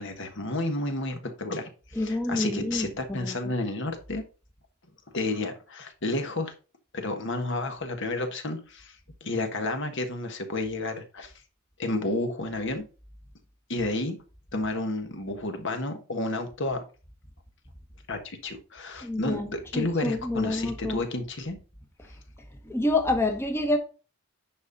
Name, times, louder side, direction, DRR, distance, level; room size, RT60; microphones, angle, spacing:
voice 1, 0.0-4.2 5.1-6.5 6.9-11.3 11.8-12.8 13.7-14.2 14.5-16.8 18.1-21.6, left 2 dB, 60° left, 1.5 m, -31 dB
voice 2, 2.0-3.4 19.0-19.5 19.7-21.0 22.6-23.8, left 2 dB, 10° left, 1.0 m, -27 dB
9.5 x 5.5 x 4.1 m
head